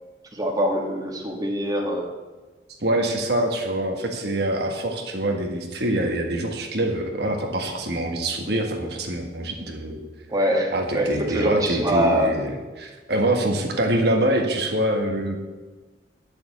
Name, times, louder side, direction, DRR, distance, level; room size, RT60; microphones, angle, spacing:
voice 1, 0.3-2.1 10.3-12.4, equal, 20° right, 0 dB, 1.6 m, -24 dB
voice 2, 2.8-10.0 10.7-15.4, right 1 dB, 65° right, 2 dB, 1.7 m, -25 dB
9.5 x 7.0 x 8.2 m, 1.3 s
head